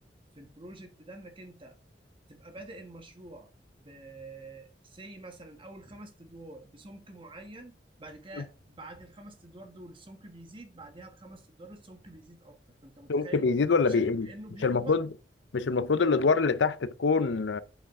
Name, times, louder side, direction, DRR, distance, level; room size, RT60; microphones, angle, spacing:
voice 1, 0.3-1.8 2.3-3.5 3.8-13.5 13.9-15.0, right 2 dB, 30° right, 1.3 m, -47 dB
voice 2, 13.1-14.3 14.6-15.1 15.5-17.6, left 4 dB, 80° left, 0.6 m, -25 dB
7.9 x 5.6 x 3.5 m
head